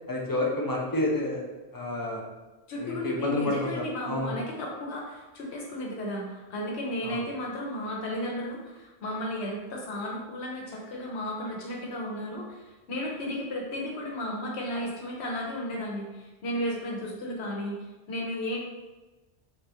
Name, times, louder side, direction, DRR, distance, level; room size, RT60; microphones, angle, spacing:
voice 1, 0.1-1.4 1.7-2.2 2.8-4.4 7.0-7.2, left 1 dB, 25° left, -2 dB, 0.5 m, -29 dB
voice 2, 2.7-17.8 18.1-18.6, left 1 dB, 75° left, -1 dB, 1.1 m, -34 dB
3.9 x 2.8 x 3.4 m, 1.1 s
omnidirectional pair, 1.1 m